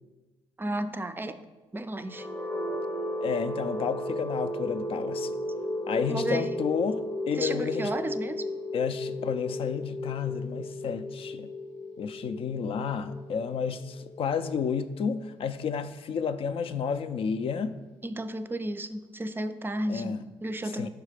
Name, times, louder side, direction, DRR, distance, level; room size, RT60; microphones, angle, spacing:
voice 1, 0.6-1.4 1.7-2.3 6.1-6.6 7.4-8.4 18.0-20.1 20.4-20.9, right 1 dB, 20° right, 11 dB, 0.4 m, -33 dB
sound 1, 2.0-15.9, left 1 dB, 10° left, 0.8 m, -35 dB
voice 2, 3.2-5.3 5.9-7.9 8.7-11.5 12.0-17.7 19.9-20.3 20.6-20.9, left 6 dB, 55° left, 12 dB, 0.4 m, -31 dB
5.8 x 4.0 x 4.9 m, 1.2 s
cardioid pair, 80°, 11 cm